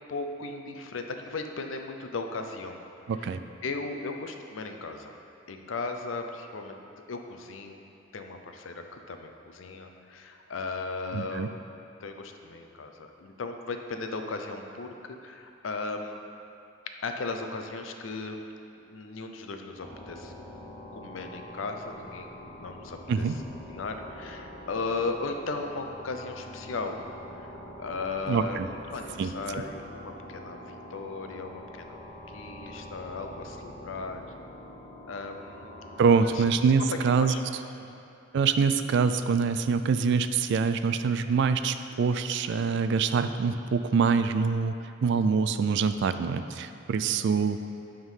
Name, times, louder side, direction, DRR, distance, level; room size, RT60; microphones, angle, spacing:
voice 1, 0.1-2.8 3.1-3.3 3.6-5.2 5.5-6.8 7.1-7.8 8.1-11.6 12.0-16.2 17.0-18.4 18.9-20.3 20.9-23.2 23.7-27.0 27.4-34.2 35.1-35.7 36.2-36.4 37.2-37.4 37.9-38.0 47.2-47.3, left 3 dB, 75° left, 5 dB, 0.6 m, -36 dB
voice 2, 3.1-3.4 11.1-11.5 23.1-23.3 28.3-28.7 29.2-29.6 36.0-37.3 38.3-44.7 45.0-47.6, right 5 dB, 65° right, 11 dB, 0.3 m, -25 dB
sound 1, 19.8-36.5, left 1 dB, 30° left, 0.8 m, -45 dB
8.8 x 3.7 x 5.5 m, 2.7 s
head